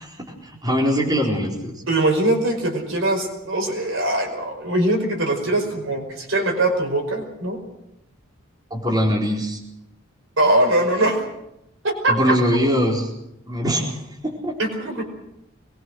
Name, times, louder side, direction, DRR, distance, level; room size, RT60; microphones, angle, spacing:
voice 1, 0.0-1.8 8.7-9.6 12.1-13.1 13.5-14.6, equal, 20° right, -2 dB, 4.5 m, -22 dB
voice 2, 1.9-7.6 10.4-11.2 11.8-12.4 14.6-15.0, right 1 dB, 70° right, 3 dB, 5.2 m, -21 dB
22.5 x 21.0 x 6.4 m, 0.83 s
head